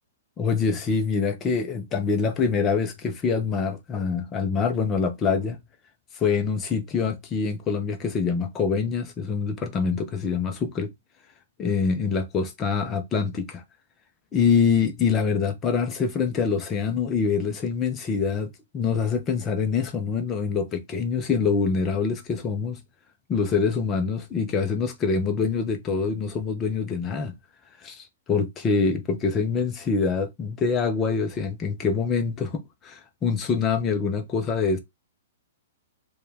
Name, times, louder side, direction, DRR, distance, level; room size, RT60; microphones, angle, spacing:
voice 1, 0.4-5.6 6.1-10.9 11.6-13.6 14.3-22.8 23.3-27.3 27.8-34.8, left 5 dB, 15° left, 0.5 m, -25 dB
4.8 x 2.3 x 3.3 m
hypercardioid pair, 175°, 0 cm